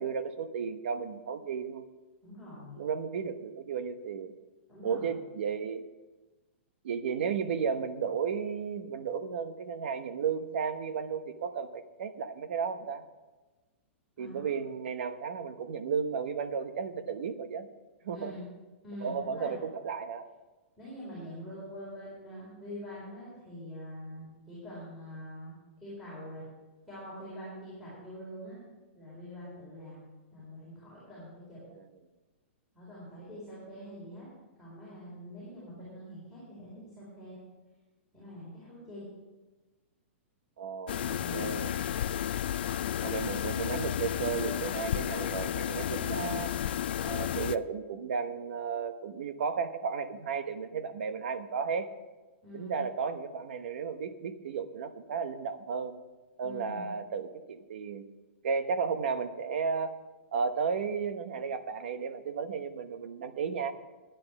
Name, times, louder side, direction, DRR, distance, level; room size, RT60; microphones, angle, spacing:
voice 1, 0.0-1.8 2.8-4.3 4.8-5.8 6.8-13.0 14.2-17.7 18.0-18.3 19.0-20.3 40.6-41.7 43.0-46.5 47.0-51.9 52.5-56.0 56.4-58.1 58.4-59.9 60.3-63.7, right 6 dB, 60° right, 10 dB, 1.1 m, -34 dB
voice 2, 2.2-2.8 4.7-5.1 14.2-14.5 18.1-18.4 18.8-19.5 20.8-26.4 26.9-28.6 28.9-31.6 32.7-34.3 34.6-37.4 38.1-39.1 41.1-41.7 46.0-46.4 52.4-52.8 56.4-56.9, equal, ahead, -10 dB, 4.3 m, -45 dB
sound 1, 40.9-47.6, left 10 dB, 50° left, 0.4 m, -32 dB
11.0 x 10.5 x 6.0 m, 1.2 s
hypercardioid pair, 170°, 7 cm